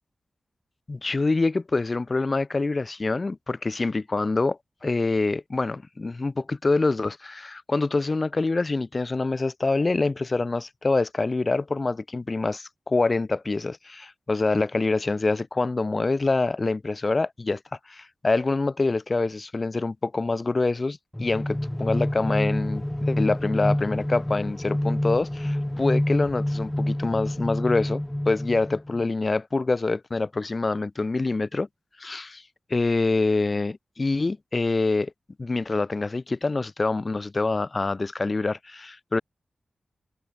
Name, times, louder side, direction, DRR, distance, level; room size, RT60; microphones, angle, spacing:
voice 1, 0.9-17.6 17.9-31.7 32.0-32.4 32.7-35.1 35.4-39.2, left 3 dB, 40° left, 2.9 m, -25 dB
sound 1, 21.1-29.0, left 1 dB, 10° left, 2.3 m, -28 dB
wide cardioid pair, 80°, 0 cm